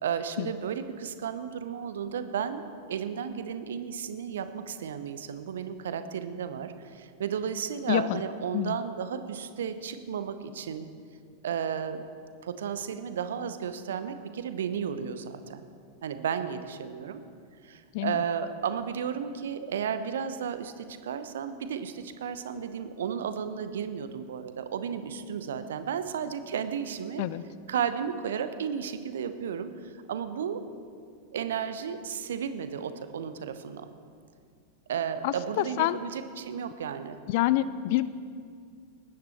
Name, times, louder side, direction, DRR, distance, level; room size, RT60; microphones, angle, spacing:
voice 1, 0.0-2.6 2.9-10.9 11.4-12.0 12.4-15.6 16.0-17.2 17.6-27.2 27.7-30.6 31.3-33.9 34.9-37.2, right 7 dB, 60° right, 10 dB, 0.8 m, -33 dB
voice 2, 7.9-8.2 8.5-8.8 17.9-18.2 27.2-27.4 35.2-36.0 37.3-38.1, left 15 dB, 50° left, 16 dB, 0.4 m, -27 dB
19.5 x 9.6 x 4.3 m, 2.2 s
figure-of-eight pair, 90°, 0 cm